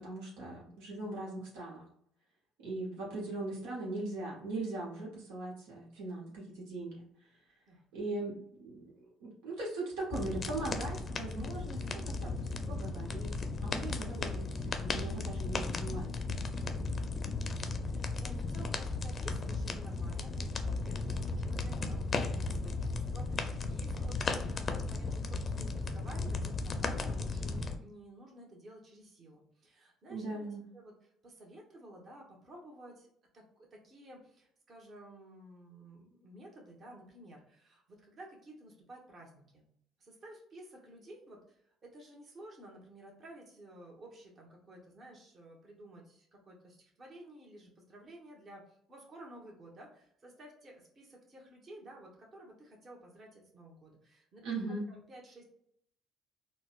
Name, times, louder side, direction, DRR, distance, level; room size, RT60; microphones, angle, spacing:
voice 1, 0.0-1.8 2.6-7.1 7.9-16.3 30.1-30.6 54.4-54.8, right 2 dB, 85° right, -3 dB, 0.9 m, -40 dB
sound 1, 10.1-27.8, left 3 dB, 40° left, 0.5 m, -35 dB
voice 2, 17.1-30.5 30.7-39.7 40.0-54.4 54.9-55.4, right 1 dB, 45° right, -1 dB, 1.1 m, -53 dB
3.9 x 2.1 x 2.4 m, 0.69 s
supercardioid pair, 75°, 0 cm